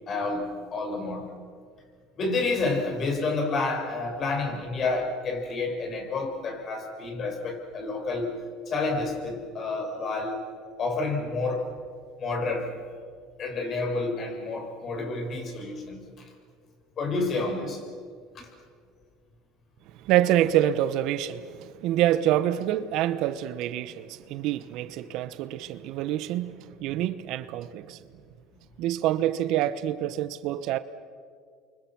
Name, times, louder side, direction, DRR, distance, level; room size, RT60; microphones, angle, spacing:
voice 1, 0.0-1.3 2.2-8.3 8.7-10.4 10.8-11.7 12.2-12.8 13.4-16.0 17.0-17.8 18.3-18.5, left 3 dB, 40° left, 6.8 m, -29 dB
voice 2, 20.0-28.0 28.8-30.8, right 12 dB, 65° right, 1.0 m, -26 dB
29.5 x 24.5 x 6.2 m
supercardioid pair, 95°, 0 cm